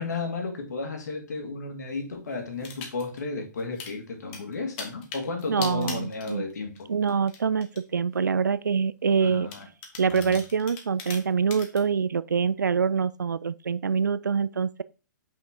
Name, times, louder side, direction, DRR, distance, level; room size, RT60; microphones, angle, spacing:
voice 1, 0.0-6.9 9.2-9.6 10.0-10.4, left 3 dB, 65° left, 2.1 m, -33 dB
sound 1, 2.6-3.2 3.6-3.9 4.3-6.8 7.1-7.8 8.4-8.5 9.5-11.8, left 5 dB, 40° left, 1.4 m, -39 dB
voice 2, 5.5-6.4 6.9-9.5 10.0-14.8, right 6 dB, 80° right, 0.4 m, -25 dB
5.7 x 5.0 x 3.5 m
figure-of-eight pair, 120°, 10 cm